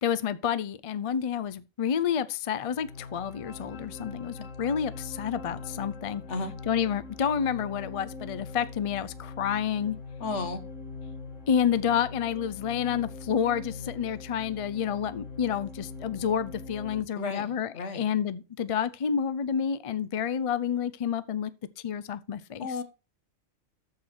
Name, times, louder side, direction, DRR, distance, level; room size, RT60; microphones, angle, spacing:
voice 1, 0.0-6.2 6.7-10.0 11.5-17.7 17.9-21.5 21.8-22.7, left 8 dB, 50° left, 0.4 m, -29 dB
sound 1, 2.7-17.0, left 3 dB, 85° left, 1.8 m, -42 dB
voice 2, 10.2-10.6 17.2-18.0 22.6-22.8, left 3 dB, 70° left, 1.6 m, -33 dB
13.5 x 4.8 x 4.4 m
omnidirectional pair, 1.3 m